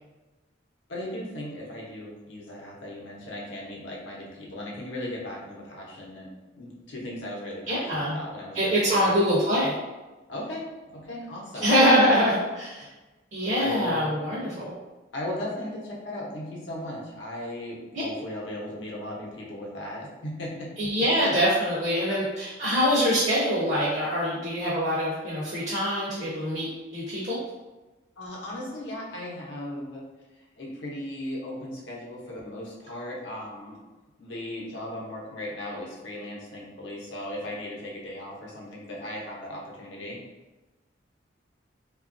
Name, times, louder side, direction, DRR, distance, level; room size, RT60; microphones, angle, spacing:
voice 1, 0.9-6.3 6.6-9.0 10.3-11.7 13.4-14.5 15.1-20.7 28.2-30.0 30.6-33.8 34.2-40.2, left 1 dB, 80° left, -3 dB, 0.8 m, -37 dB
voice 2, 7.7-8.2 8.5-9.7 11.6-12.9 13.3-14.7 20.8-27.4, equal, 35° right, -8 dB, 0.5 m, -24 dB
2.9 x 2.3 x 2.5 m, 1.2 s
head